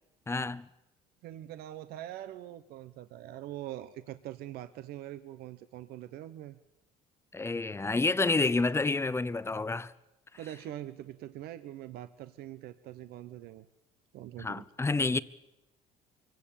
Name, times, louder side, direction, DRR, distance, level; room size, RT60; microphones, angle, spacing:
voice 1, 0.3-0.7 7.3-9.9 14.4-15.2, left 3 dB, 15° left, 0.8 m, -29 dB
voice 2, 1.2-6.6 10.4-13.7 14.1-14.6, right 13 dB, 70° right, 0.9 m, -43 dB
24.0 x 17.0 x 8.5 m
supercardioid pair, 95°, 17 cm